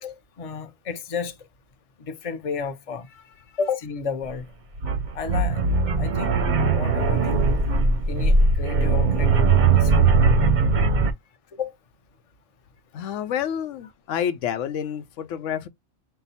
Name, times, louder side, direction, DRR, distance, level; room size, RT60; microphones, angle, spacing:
voice 1, 0.0-1.3 2.0-3.2 3.5-4.5 5.1-5.6 6.0-6.3 6.7-7.5 8.1-10.1 11.5-11.7, left 5 dB, 35° left, 0.7 m, -32 dB
sound 1, 4.2-4.3 4.8-11.1, right 4 dB, 50° right, 0.6 m, -20 dB
voice 2, 12.9-15.7, left 9 dB, 85° left, 0.9 m, -29 dB
5.6 x 2.1 x 4.1 m
omnidirectional pair, 1.3 m